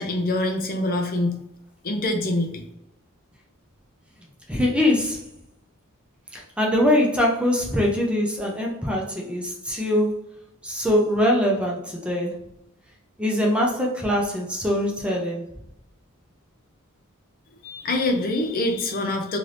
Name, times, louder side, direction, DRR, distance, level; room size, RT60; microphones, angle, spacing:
voice 1, 0.0-1.4 1.8-2.6 17.6-19.4, left 1 dB, 40° left, 3 dB, 0.5 m, -25 dB
voice 2, 4.5-5.3 6.3-10.3 10.6-12.4 13.2-15.4, left 1 dB, 5° right, -2 dB, 0.5 m, -23 dB
2.7 x 2.6 x 3.2 m, 0.81 s
head